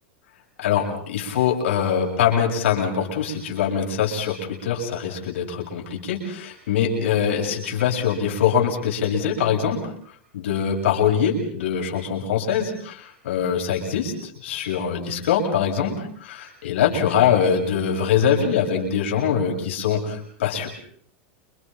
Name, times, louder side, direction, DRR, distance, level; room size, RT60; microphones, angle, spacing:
voice 1, 0.6-9.9 10.3-20.7, left 7 dB, 90° left, 0 dB, 7.5 m, -23 dB
29.5 x 26.5 x 5.6 m, 0.63 s
supercardioid pair, 160°, 7 cm